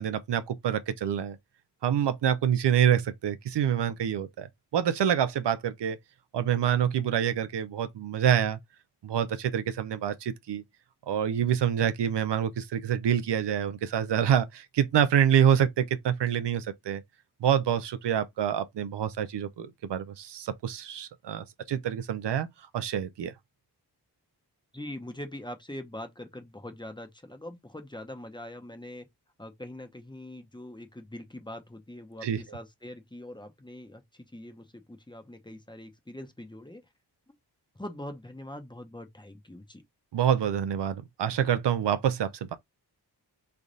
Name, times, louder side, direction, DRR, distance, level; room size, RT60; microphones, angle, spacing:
voice 1, 0.0-1.4 1.8-4.5 4.7-6.0 6.3-8.6 9.0-10.6 11.1-17.0 17.4-22.5 22.7-23.3 32.2-32.4 40.1-42.6, right 9 dB, 85° right, 0.6 m, -26 dB
voice 2, 24.7-29.1 29.4-36.8 37.8-39.8, left 1 dB, 10° left, 0.8 m, -43 dB
3.4 x 2.4 x 3.8 m
wide cardioid pair, 85°, 40 cm